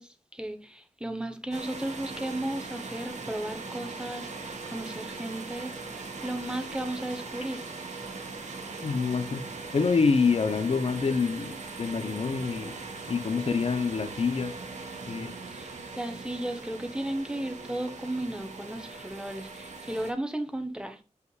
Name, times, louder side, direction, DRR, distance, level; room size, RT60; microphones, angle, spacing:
voice 1, 0.0-5.7 6.2-7.7 15.5-21.0, right 1 dB, 5° right, 0.8 m, -35 dB
sound 1, 1.5-20.1, right 3 dB, 75° right, 1.3 m, -40 dB
voice 2, 8.8-9.4 9.7-12.8 13.1-14.5 15.1-15.3, left 5 dB, 55° left, 0.6 m, -26 dB
7.7 x 5.5 x 2.3 m
wide cardioid pair, 105°, 12 cm